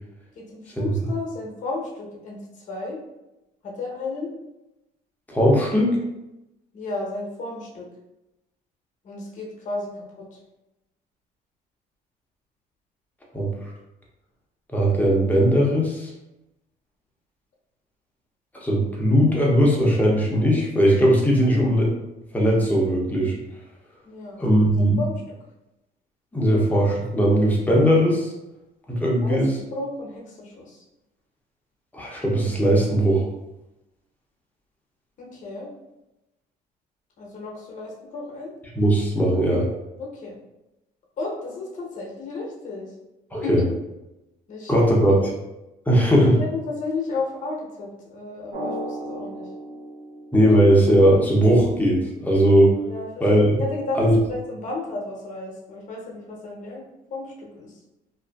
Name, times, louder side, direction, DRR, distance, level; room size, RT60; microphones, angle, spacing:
voice 1, 0.4-3.0 3.6-4.3 6.7-7.9 9.0-9.9 10.2-10.4 24.0-24.4 24.7-25.2 29.1-29.4 29.7-30.8 35.2-35.7 37.2-38.5 40.0-40.3 41.2-42.9 43.4-43.6 44.5-44.9 46.4-49.5 52.8-53.1 53.6-54.0 54.3-56.8 57.1-57.7, left 3 dB, 45° left, -2 dB, 0.8 m, -33 dB
voice 2, 5.3-6.0 13.3-13.7 14.7-16.1 18.5-21.9 22.3-23.4 24.4-25.0 26.3-28.3 28.9-29.5 31.9-33.3 38.7-39.7 43.3-43.6 44.7-45.2 45.9-46.4 50.3-52.7 53.2-53.6 54.0-54.2, equal, 10° left, -3 dB, 0.6 m, -19 dB
Drum, 48.5-51.1, right 1 dB, 75° right, 0.6 m, -35 dB
2.5 x 2.4 x 2.3 m, 0.95 s
cardioid pair, 110°, 17 cm